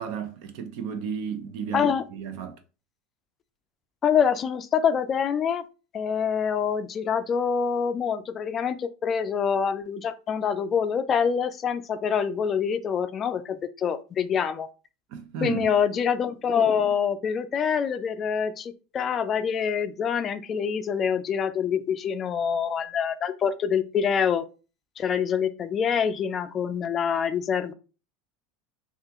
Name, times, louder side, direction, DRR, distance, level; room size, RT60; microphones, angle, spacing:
voice 1, 0.0-2.6 15.1-15.7, right 7 dB, 65° right, 0.6 m, -33 dB
voice 2, 1.7-2.0 4.0-5.6 5.9-14.7 15.4-24.4 25.0-27.7, left 7 dB, 30° left, 0.3 m, -25 dB
3.4 x 2.4 x 2.9 m
supercardioid pair, 125°, 0 cm